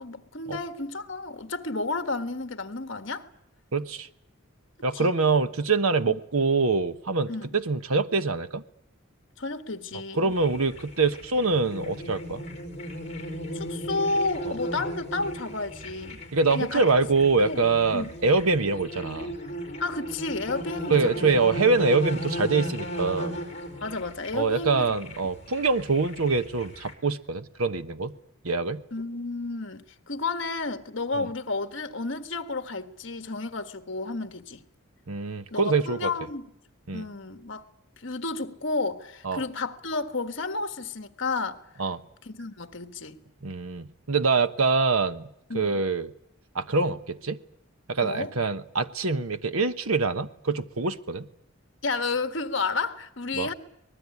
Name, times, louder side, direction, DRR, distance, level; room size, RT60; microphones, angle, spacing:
voice 1, 0.0-3.3 4.9-5.1 6.1-6.2 7.3-7.5 9.4-10.3 13.5-16.2 16.5-16.8 17.4-17.6 17.9-18.1 19.8-21.4 23.8-24.9 28.9-34.6 35.5-36.5 36.9-37.6 38.0-41.6 42.2-43.2 45.5-45.8 48.0-48.3 51.8-53.5, left 3 dB, 60° left, 1.5 m, -31 dB
voice 2, 3.7-4.1 4.8-8.6 10.1-12.5 14.5-14.6 16.3-19.3 20.9-23.4 24.3-28.1 28.4-28.8 31.2-31.3 35.1-36.1 36.9-37.1 39.2-39.4 41.8-42.0 43.4-46.1 46.5-47.4 47.9-51.3 53.4-53.5, right 4 dB, 80° right, 1.1 m, -25 dB
sound 1, 10.3-26.9, equal, 30° left, 4.3 m, -36 dB
24.0 x 20.0 x 9.7 m
head